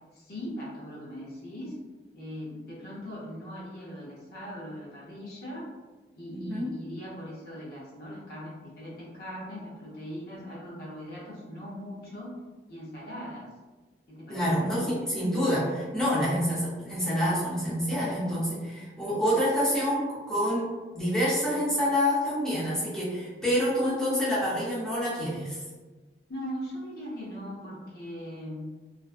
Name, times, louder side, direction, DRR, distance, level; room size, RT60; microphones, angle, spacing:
voice 1, 0.1-1.8 2.1-5.7 6.1-12.3 12.7-13.5 14.1-14.7 26.3-28.7, equal, 55° left, -6 dB, 0.7 m, -40 dB
voice 2, 6.3-6.7 14.3-20.7 20.9-25.6, equal, 5° left, -11 dB, 0.8 m, -27 dB
2.5 x 2.2 x 2.4 m, 1.3 s
head